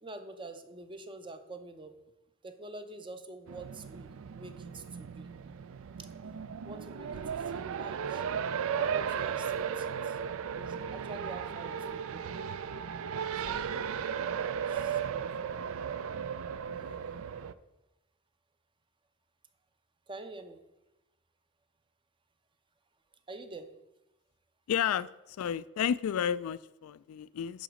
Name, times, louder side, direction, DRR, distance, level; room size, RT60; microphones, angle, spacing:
voice 1, 0.0-1.9 2.4-5.3 6.0-6.1 6.6-8.2 8.8-10.2 10.6-12.2 13.4-14.0 14.3-15.8 20.1-20.6 23.3-23.7, right 2 dB, 25° right, 8 dB, 0.6 m, -47 dB
Race car auto racing, 3.5-17.5, right 7 dB, 70° right, 0.4 m, -35 dB
voice 2, 24.7-25.1 25.4-27.6, left 9 dB, 75° left, 16 dB, 0.3 m, -31 dB
10.5 x 4.0 x 6.2 m, 0.97 s
head